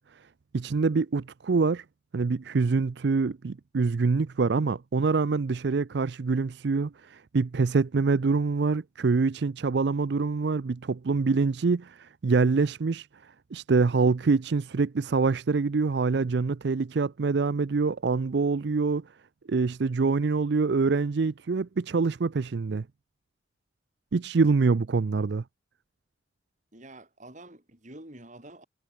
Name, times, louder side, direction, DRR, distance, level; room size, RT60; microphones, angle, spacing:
voice 1, 0.5-1.8 2.1-13.1 13.5-19.0 19.5-22.8 24.1-25.4, right 4 dB, 55° right, 0.5 m, -25 dB
voice 2, 26.7-28.6, right 1 dB, 40° right, 3.1 m, -47 dB
head